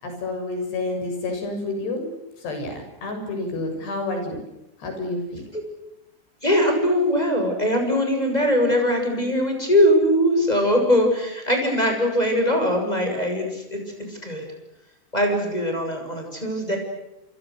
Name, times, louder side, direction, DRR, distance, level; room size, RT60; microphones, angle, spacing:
voice 1, 0.0-2.1 2.4-4.4 4.8-5.4, left 2 dB, 85° left, 5 dB, 9.3 m, -29 dB
voice 2, 6.4-13.8 14.1-14.4 15.1-16.8, equal, 10° left, 3 dB, 7.7 m, -21 dB
29.5 x 27.5 x 6.6 m, 0.89 s
omnidirectional pair, 4.7 m